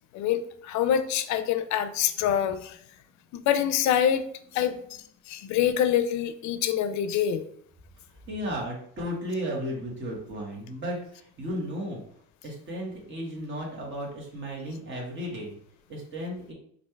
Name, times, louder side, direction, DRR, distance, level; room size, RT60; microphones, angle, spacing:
voice 1, 0.1-2.8 3.5-4.2 4.5-4.8 5.3-7.4, left 9 dB, 70° left, 11 dB, 0.4 m, -25 dB
voice 2, 8.3-12.0 12.4-15.6 15.9-16.5, equal, 40° right, -3 dB, 1.5 m, -34 dB
3.2 x 2.6 x 4.4 m, 0.64 s
cardioid pair, 135°, 30 cm